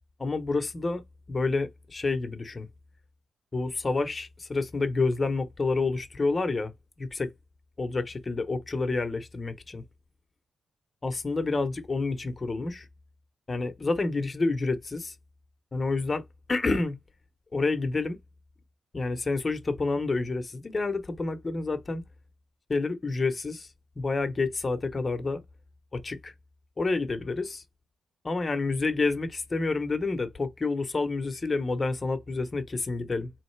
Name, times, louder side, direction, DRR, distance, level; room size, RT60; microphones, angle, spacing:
voice 1, 0.2-1.0 1.3-2.7 3.5-6.7 7.0-7.3 7.8-9.8 11.0-12.9 13.5-15.1 15.7-17.0 17.5-18.2 18.9-22.0 22.7-23.7 24.0-25.4 25.9-26.3 26.8-27.6 28.2-33.3, left 3 dB, 30° left, 0.9 m, -29 dB
3.7 x 3.2 x 3.3 m
cardioid pair, 100°, 0 cm